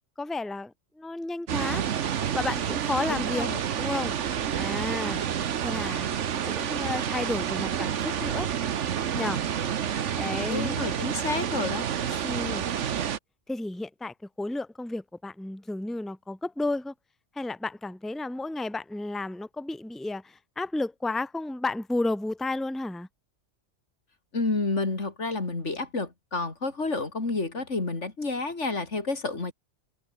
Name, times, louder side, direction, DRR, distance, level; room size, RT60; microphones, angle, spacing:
voice 1, 0.0-1.8 2.3-3.5 3.8-4.1 4.6-5.2 5.6-6.1 6.5-8.5 9.1-9.4 10.1-10.8 12.2-12.6 13.5-16.9 17.3-23.1, left 2 dB, ahead, 1.0 m, -32 dB
sound 1, 1.5-13.2, right 9 dB, 85° right, 1.3 m, -29 dB
voice 2, 3.1-3.6 10.5-12.3 24.3-29.5, left 3 dB, 85° left, 3.6 m, -30 dB
omnidirectional pair, 1.2 m